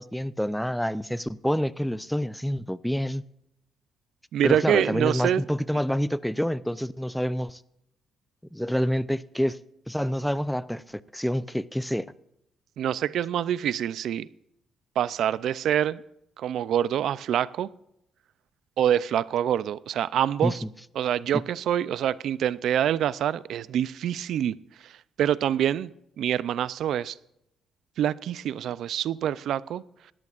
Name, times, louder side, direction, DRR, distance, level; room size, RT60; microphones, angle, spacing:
voice 1, 0.0-3.2 4.4-7.6 8.5-9.6 9.9-12.1 20.4-20.6, equal, ahead, 0.5 m, -27 dB
voice 2, 4.3-5.4 12.8-14.3 15.0-16.0 16.4-17.7 18.8-20.6 21.0-24.5 24.8-25.9 26.2-27.2 28.0-29.8, right 10 dB, 75° right, 0.4 m, -26 dB
19.0 x 14.0 x 2.5 m
cardioid pair, 90°, 0 cm